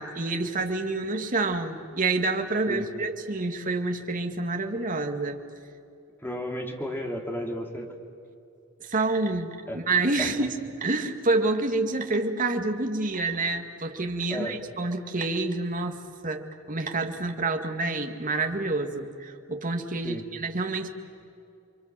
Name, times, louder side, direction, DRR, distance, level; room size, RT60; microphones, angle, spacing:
voice 1, 0.0-5.4 8.8-16.0 16.2-20.9, right 3 dB, 40° right, 5 dB, 1.9 m, -28 dB
voice 2, 6.2-7.9 9.7-9.8 10.2-10.3 14.3-14.6 20.0-20.3, equal, 10° left, 2 dB, 2.7 m, -33 dB
30.0 x 24.0 x 7.5 m, 2.6 s
head